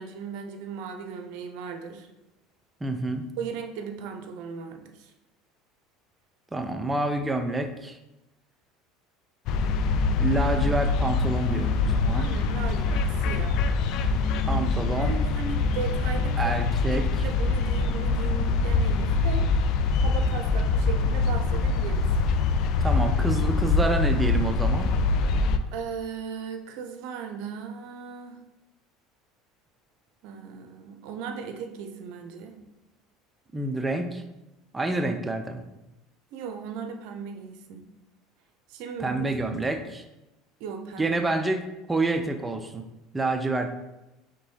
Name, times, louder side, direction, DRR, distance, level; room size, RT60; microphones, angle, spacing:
voice 1, 0.0-2.1 3.4-5.1 12.2-13.7 15.0-16.6 16.9-19.4 20.0-22.1 25.7-28.4 30.2-32.6 36.3-37.8 38.7-39.4 40.6-41.6, right 6 dB, 70° right, 5 dB, 0.6 m, -37 dB
voice 2, 2.8-3.3 6.5-8.0 10.2-12.3 14.5-15.2 16.4-17.1 22.8-24.9 33.5-34.2 34.7-35.6 39.0-40.0 41.0-42.8 43.1-43.7, right 2 dB, 10° right, 6 dB, 0.5 m, -28 dB
sound 1, 9.5-25.6, left 4 dB, 60° left, 0.3 m, -24 dB
5.3 x 3.4 x 2.8 m, 0.98 s
supercardioid pair, 105°, 0 cm